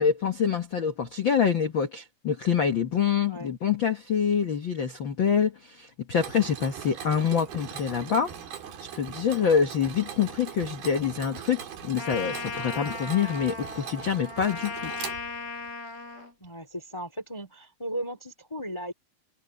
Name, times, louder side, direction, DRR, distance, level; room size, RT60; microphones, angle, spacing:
voice 1, 0.0-8.3 8.8-14.9, left 7 dB, 85° left, 1.0 m, -26 dB
Mechanisms, 6.1-15.7, right 8 dB, 75° right, 4.5 m, -41 dB
Trumpet, 12.0-16.3, left 3 dB, 70° left, 6.5 m, -37 dB
voice 2, 16.4-18.9, right 1 dB, 10° left, 2.2 m, -36 dB
omnidirectional pair, 4.4 m